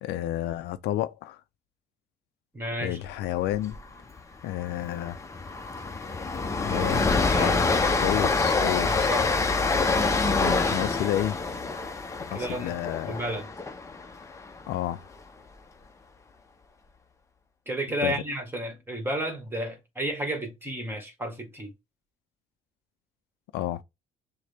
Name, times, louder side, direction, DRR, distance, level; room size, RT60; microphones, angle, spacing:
voice 1, 0.0-1.4 2.8-3.8 4.4-5.2 6.6-7.6 8.0-9.1 10.3-11.4 12.3-13.2 14.7-15.1 18.0-18.2 23.5-23.8, left 13 dB, 80° left, 0.5 m, -30 dB
voice 2, 2.5-3.0 7.3-7.8 8.8-9.3 12.3-12.7 13.0-13.5 17.7-21.7, right 1 dB, 15° right, 1.6 m, -32 dB
Train, 3.5-3.8 4.0-4.2 4.6-14.7, left 3 dB, 15° left, 0.8 m, -26 dB
6.4 x 2.2 x 3.4 m
cardioid pair, 110°, 17 cm